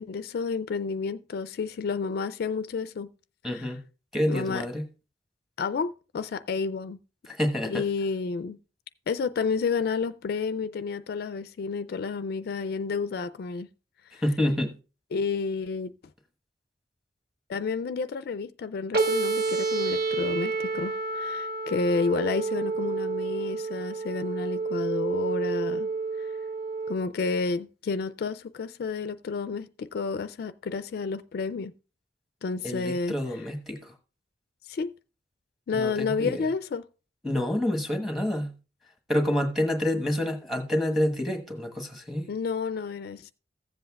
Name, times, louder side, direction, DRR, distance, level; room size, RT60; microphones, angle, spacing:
voice 1, 0.0-3.1 3.5-3.7 4.3-4.6 5.6-7.0 7.7-8.6 9.1-13.7 14.1-14.2 15.1-15.9 17.5-25.9 26.2-26.3 26.9-31.7 32.4-33.2 34.7-35.0 35.7-36.8 42.3-43.3, left 4 dB, 60° left, 0.3 m, -30 dB
voice 2, 3.4-3.8 4.1-4.8 7.3-7.8 14.2-14.8 32.6-33.9 35.7-36.5 37.2-38.6 39.1-42.3, left 1 dB, ahead, 1.2 m, -28 dB
sound 1, 18.9-26.9, right 4 dB, 60° right, 0.8 m, -29 dB
15.0 x 7.7 x 2.3 m
head